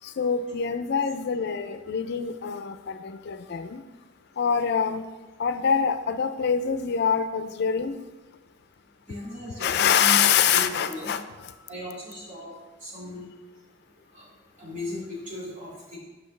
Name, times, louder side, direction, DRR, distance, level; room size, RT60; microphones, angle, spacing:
voice 1, 0.0-3.8 4.4-5.0 5.4-8.0 9.6-11.5, left 7 dB, 60° left, 10 dB, 0.4 m, -25 dB
voice 2, 9.1-10.2 10.5-10.6 10.9-11.1 11.7-12.5 12.8-13.2 14.1-14.2 14.6-16.0, left 1 dB, 45° right, -6 dB, 2.3 m, -37 dB
7.7 x 6.0 x 3.2 m, 1.2 s
head